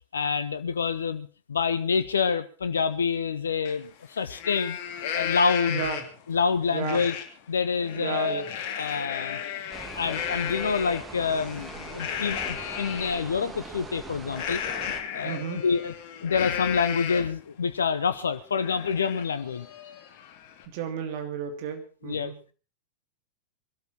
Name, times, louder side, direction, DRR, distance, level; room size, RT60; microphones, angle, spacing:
voice 1, 0.1-4.8 5.1-5.9 6.3-7.2 7.5-8.4 8.8-9.4 10.0-15.9 16.2-19.7 22.0-22.3, left 5 dB, 70° left, 13 dB, 0.8 m, -27 dB
Livestock farm animals working animals, 3.6-3.7 4.2-6.2 6.8-7.2 7.6-13.2 14.3-17.4 17.8-17.9 18.3-20.6, left 8 dB, 45° left, 2.7 m, -34 dB
voice 2, 5.7-6.0 6.7-7.0 7.9-8.5 15.2-15.6 20.7-22.4, right 7 dB, 45° right, 5 dB, 3.0 m, -33 dB
sound 1, 9.7-15.0, right 3 dB, 15° right, 2.1 m, -42 dB
22.0 x 13.0 x 4.5 m, 0.37 s
figure-of-eight pair, 90°, 0 cm